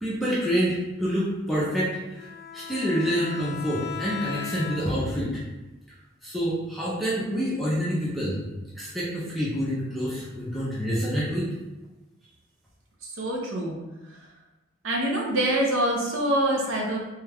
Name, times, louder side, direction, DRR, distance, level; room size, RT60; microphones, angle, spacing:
voice 1, 0.0-2.2 2.5-5.4 6.2-8.4 8.8-11.5, equal, ahead, -8 dB, 0.5 m, -27 dB
Bowed string instrument, 2.1-5.2, left 6 dB, 55° left, 0.5 m, -37 dB
voice 2, 13.0-13.8 14.2-14.3 14.8-17.0, right 1 dB, 80° right, -1 dB, 0.7 m, -25 dB
3.1 x 2.3 x 3.4 m, 1.1 s
head